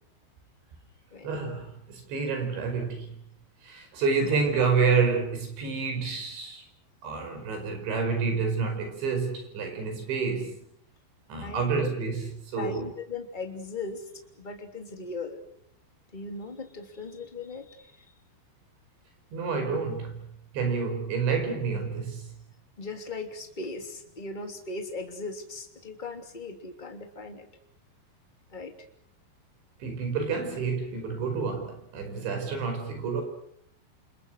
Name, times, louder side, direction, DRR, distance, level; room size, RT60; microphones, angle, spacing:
voice 1, 1.2-3.1 3.6-6.6 7.0-10.6 11.3-12.3 12.5-12.9 19.3-20.2 20.5-22.3 29.8-33.2, right 5 dB, 85° right, 7.6 m, -28 dB
voice 2, 12.6-14.1 14.4-15.4 16.1-18.0 22.8-27.5 28.5-28.7, left 3 dB, 15° left, 2.4 m, -38 dB
28.5 x 27.5 x 6.4 m
omnidirectional pair, 5.1 m